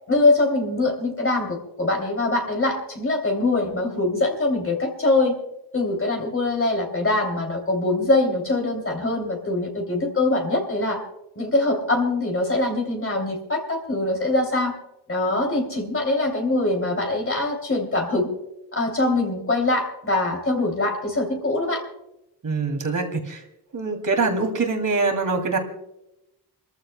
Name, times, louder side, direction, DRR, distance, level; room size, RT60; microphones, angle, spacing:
voice 1, 0.1-5.3 5.7-11.0 11.4-14.7 15.1-18.3 18.7-21.8, left 2 dB, 35° left, 1 dB, 2.9 m, -23 dB
voice 2, 22.4-23.4 23.7-25.6, right 3 dB, 50° right, 4 dB, 2.8 m, -24 dB
29.0 x 14.5 x 2.2 m, 0.88 s
wide cardioid pair, 100°, 39 cm